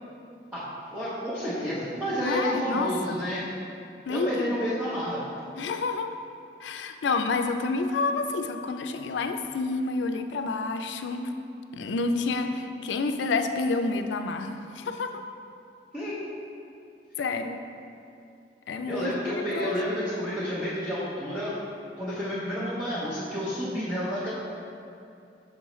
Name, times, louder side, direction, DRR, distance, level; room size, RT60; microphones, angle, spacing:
voice 1, 0.5-3.4 4.1-5.2 15.9-16.2 18.9-21.5 22.0-24.3, equal, 5° right, -12 dB, 0.8 m, -30 dB
voice 2, 2.2-3.2 4.1-4.6 5.6-6.1 6.6-11.3 11.7-15.2 17.2-17.6 18.7-19.7, left 3 dB, 90° left, 7 dB, 0.4 m, -29 dB
6.3 x 5.5 x 3.0 m, 2.6 s
head